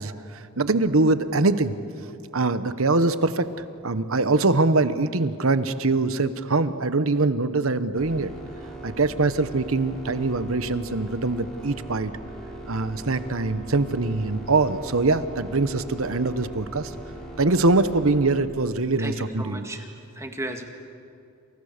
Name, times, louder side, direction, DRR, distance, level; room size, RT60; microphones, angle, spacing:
voice 1, 0.0-1.8 2.3-3.5 3.8-8.3 8.8-12.1 12.7-16.9 17.4-19.7, right 3 dB, 70° right, 12 dB, 1.1 m, -23 dB
sound 1, 8.0-18.3, right 1 dB, 5° left, 5.9 m, -40 dB
voice 2, 19.0-19.8 20.2-20.6, right 1 dB, 15° right, 4 dB, 2.0 m, -34 dB
28.5 x 28.0 x 6.7 m, 2.6 s
head